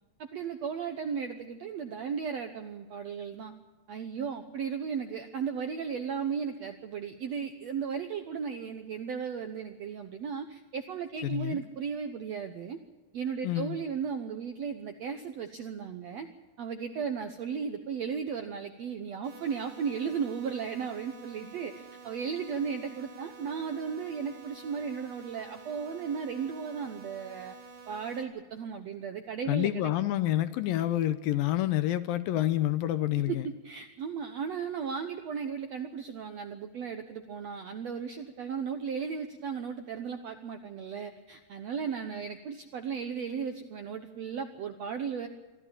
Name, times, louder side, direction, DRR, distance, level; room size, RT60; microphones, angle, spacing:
voice 1, 0.2-3.5 3.9-12.8 13.1-16.3 16.6-27.6 27.9-29.9 33.3-45.3, right 6 dB, 70° right, 7 dB, 1.6 m, -35 dB
voice 2, 11.2-11.6 13.4-13.8 29.5-33.4, left 13 dB, 75° left, 13 dB, 2.4 m, -28 dB
sound 1, 19.2-28.2, right 5 dB, 90° right, 4.1 m, -50 dB
24.5 x 14.0 x 8.7 m, 1.2 s
omnidirectional pair, 4.4 m